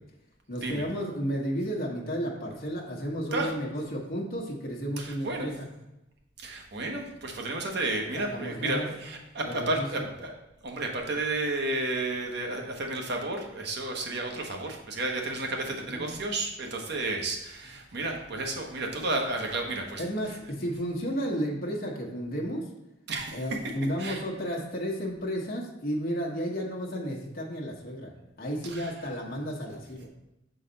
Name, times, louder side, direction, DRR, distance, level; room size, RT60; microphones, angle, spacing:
voice 1, 0.5-5.7 8.1-8.9 9.4-10.1 15.7-16.2 20.0-22.6 23.3-28.1 28.4-30.1, equal, 50° left, -2 dB, 1.1 m, -33 dB
voice 2, 5.0-5.5 6.4-10.3 10.6-20.0 23.1-23.4 24.0-24.2 28.6-28.9, right 2 dB, 60° right, 2 dB, 0.9 m, -32 dB
6.5 x 4.0 x 3.9 m, 0.92 s
head